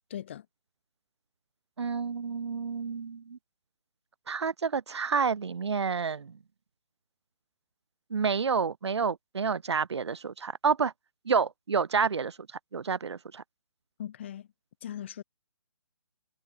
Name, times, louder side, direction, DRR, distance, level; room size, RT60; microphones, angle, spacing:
voice 1, 0.1-0.5 14.0-14.5 14.8-15.2, left 10 dB, 25° left, 1.2 m, -39 dB
voice 2, 1.8-3.4 4.3-6.4 8.1-10.9 11.3-12.4 12.7-13.4, right 5 dB, 60° right, 2.3 m, -29 dB
hypercardioid pair, 175°, 16 cm